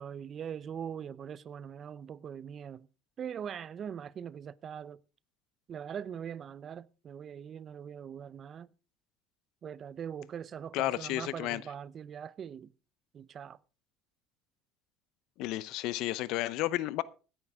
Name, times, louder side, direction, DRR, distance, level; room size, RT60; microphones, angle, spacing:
voice 1, 0.0-2.9 3.2-5.0 5.7-8.7 9.6-12.7 13.1-13.6, right 8 dB, 40° right, 0.6 m, -42 dB
voice 2, 10.7-11.6 15.4-17.0, left 16 dB, 70° left, 0.8 m, -32 dB
16.5 x 10.0 x 3.6 m
supercardioid pair, 100°, 0 cm